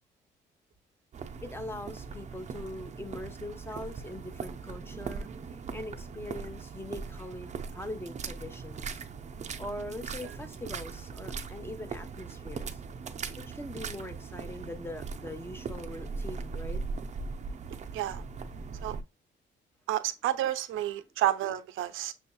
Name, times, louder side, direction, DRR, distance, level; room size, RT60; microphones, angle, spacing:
sound 1, 1.1-19.0, right 5 dB, 35° right, 0.5 m, -40 dB
voice 1, 1.4-5.3 5.7-9.1 9.6-12.8 13.4-16.8, left 1 dB, 10° left, 0.8 m, -42 dB
voice 2, 19.9-22.1, right 13 dB, 80° right, 0.6 m, -30 dB
6.3 x 2.7 x 2.2 m
cardioid pair, 90°, 20 cm